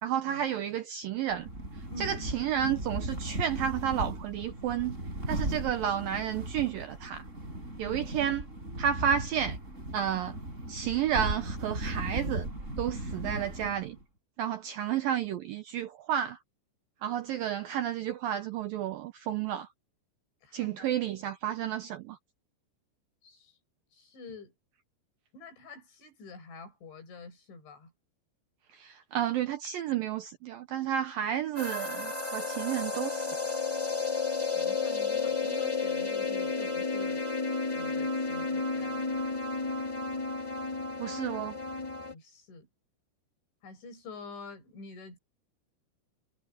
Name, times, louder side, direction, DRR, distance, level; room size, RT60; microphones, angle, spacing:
voice 1, 0.0-1.5 2.0-5.0 5.3-7.2 7.8-8.4 8.8-9.6 9.9-10.4 10.7-12.5 12.8-14.0 14.4-16.4 17.0-19.7 20.5-22.2 28.7-33.4 41.0-41.6, right 9 dB, 75° right, 2.1 m, -31 dB
sound 1, 1.3-14.0, right 1 dB, 15° right, 8.2 m, -37 dB
voice 2, 1.9-2.2 5.3-5.6 7.8-8.2 20.4-21.0 23.2-23.6 23.9-24.5 25.3-27.9 34.5-37.3 37.8-39.2 42.1-42.7 43.6-45.2, left 3 dB, 85° left, 9.3 m, -47 dB
sound 2, 31.6-42.1, left 4 dB, 10° left, 2.6 m, -32 dB
omnidirectional pair, 5.1 m